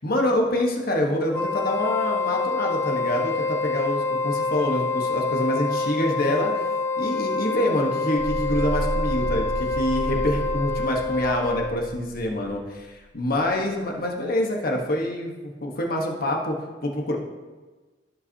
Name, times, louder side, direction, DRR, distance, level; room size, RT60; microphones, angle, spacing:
voice 1, 0.0-6.6 7.0-16.5 16.8-17.3, left 1 dB, 50° left, 1 dB, 1.3 m, -26 dB
Wind instrument woodwind instrument, 1.3-11.9, left 3 dB, 15° left, 0.5 m, -27 dB
sound 1, 8.2-12.8, right 2 dB, 75° right, 0.5 m, -32 dB
15.5 x 5.6 x 2.9 m, 1.3 s
head